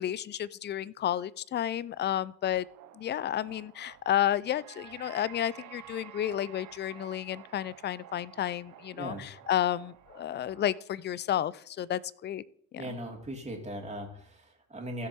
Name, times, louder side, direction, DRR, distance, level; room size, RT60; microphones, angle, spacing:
voice 1, 0.0-2.7 2.9-12.4 12.9-13.0, left 11 dB, 25° left, 21 dB, 0.4 m, -31 dB
sound 1, 2.4-10.8, right 12 dB, 45° right, 0.7 m, -51 dB
voice 2, 8.9-9.3 12.8-15.1, right 1 dB, 15° right, 0 dB, 2.9 m, -39 dB
16.0 x 7.1 x 3.0 m, 0.64 s
figure-of-eight pair, 50°, 42 cm